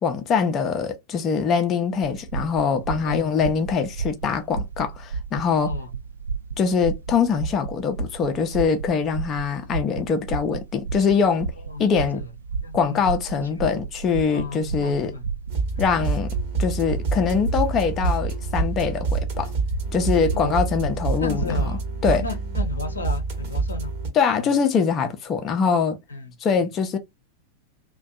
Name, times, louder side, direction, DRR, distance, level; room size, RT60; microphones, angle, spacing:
voice 1, 0.0-5.7 6.6-11.5 11.8-12.2 12.7-15.1 15.8-19.5 19.9-21.6 22.0-22.2 24.1-26.0 26.4-27.0, left 6 dB, 30° left, 0.4 m, -23 dB
sound 1, 2.0-21.5, right 4 dB, 75° right, 0.3 m, -33 dB
voice 2, 3.0-3.5 5.6-5.9 11.6-12.3 12.6-13.0 13.4-13.7 14.3-15.3 15.7-15.8 20.3-20.7 21.2-23.9 24.4-24.5 26.1-26.3, left 3 dB, 75° left, 0.5 m, -34 dB
sound 2, 15.5-24.1, right 3 dB, 50° right, 1.0 m, -27 dB
2.5 x 2.2 x 2.3 m
figure-of-eight pair, 90°, 0 cm